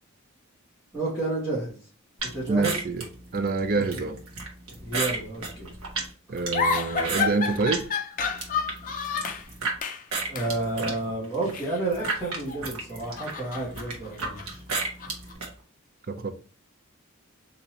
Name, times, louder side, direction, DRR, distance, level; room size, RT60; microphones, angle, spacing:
voice 1, 0.9-1.9 2.3-2.8 3.7-4.0 4.8-5.7 10.3-14.6, right 2 dB, 5° right, 1.9 m, -31 dB
sound 1, 2.2-7.9 8.2-9.8 10.1-15.5, right 3 dB, 75° right, 1.2 m, -33 dB
voice 2, 2.5-3.0 3.3-4.2 6.3-7.9 16.1-16.3, right 3 dB, 40° right, 0.4 m, -26 dB
sound 2, 6.5-9.5 9.8-10.1 10.3-10.5 11.5-12.6 12.9-15.3, left 5 dB, 40° left, 0.5 m, -30 dB
4.2 x 2.8 x 3.0 m
head